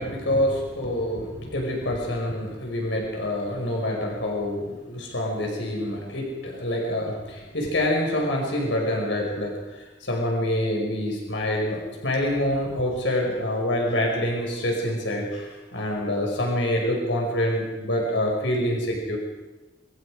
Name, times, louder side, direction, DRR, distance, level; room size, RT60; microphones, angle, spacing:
voice 1, 0.0-9.5 10.0-19.2, left 1 dB, 85° left, 0 dB, 5.5 m, -26 dB
27.5 x 24.5 x 5.0 m, 1.1 s
head